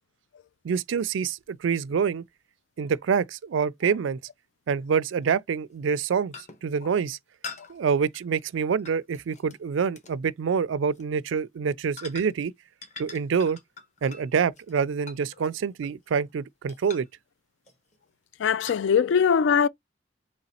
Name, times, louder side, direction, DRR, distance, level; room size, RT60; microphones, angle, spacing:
voice 1, 0.6-2.2 2.8-4.2 4.7-6.3 6.6-7.2 7.7-12.5 13.0-13.6 14.0-17.0, right 6 dB, 90° right, 0.4 m, -26 dB
sound 1, 1.4-1.5 3.9-4.0 5.2-5.4 5.8-6.0 6.3-6.7 7.4-9.6 10.0-10.2 10.8-11.1 12.0-12.5 12.8-16.3 16.7-17.2 17.7-18.0 18.7-18.8, left 4 dB, 40° left, 1.1 m, -44 dB
voice 2, 18.4-19.7, left 7 dB, 70° left, 0.3 m, -21 dB
4.0 x 3.0 x 4.1 m
head